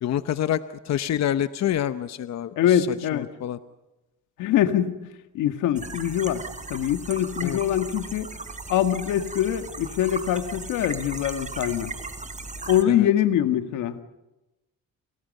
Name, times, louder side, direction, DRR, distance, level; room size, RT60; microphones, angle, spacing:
voice 1, 0.0-3.6 7.4-7.6 12.9-13.1, left 10 dB, 60° left, 12 dB, 1.0 m, -27 dB
voice 2, 2.6-3.3 4.4-5.0 5.3-6.4 6.7-8.3 8.7-11.9 12.7-14.0, left 11 dB, 90° left, 8 dB, 1.9 m, -23 dB
sound 1, 5.8-12.8, right 3 dB, 25° right, 3.5 m, -37 dB
30.0 x 28.5 x 5.5 m, 1.0 s
cardioid pair, 90°, 30 cm